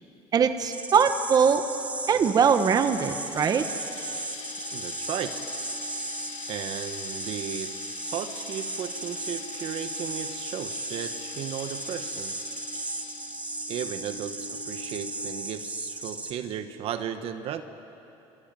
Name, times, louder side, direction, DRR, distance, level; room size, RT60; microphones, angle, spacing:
voice 1, 0.3-1.6 2.1-3.7, right 6 dB, 35° right, 8 dB, 1.3 m, -21 dB
sound 1, 0.7-16.3, right 2 dB, 15° right, 2.1 m, -36 dB
Rattle (instrument), 1.6-15.7 16.0-16.1 16.4-16.6, left 4 dB, 85° left, 6.6 m, -47 dB
sound 2, 2.2-15.7, left 7 dB, 35° left, 3.2 m, -45 dB
voice 2, 4.7-5.4 6.5-7.8 8.1-12.4 13.7-17.6, right 9 dB, 60° right, 9 dB, 1.3 m, -35 dB
26.0 x 23.5 x 9.2 m, 2.9 s
cardioid pair, 130°, 11 cm